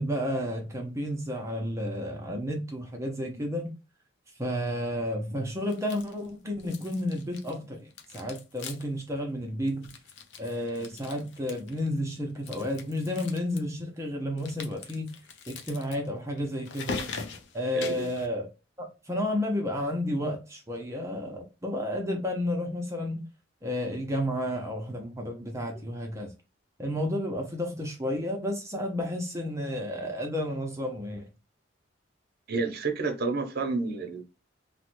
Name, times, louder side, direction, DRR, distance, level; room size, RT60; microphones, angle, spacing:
voice 1, 0.0-3.7 4.4-9.9 10.4-15.1 15.5-17.0 17.5-18.5 18.8-23.2 23.6-26.3 26.8-31.3, left 1 dB, 15° right, 0.6 m, -31 dB
sound 1, 5.7-6.3 6.6-7.6 7.9-9.0 9.3-9.4 9.7-11.9 12.4-13.6 14.4-18.3, left 4 dB, 70° left, 0.5 m, -42 dB
voice 2, 17.7-18.1 25.7-25.8 32.5-34.2, right 4 dB, 55° right, 0.7 m, -30 dB
3.0 x 2.1 x 3.0 m
head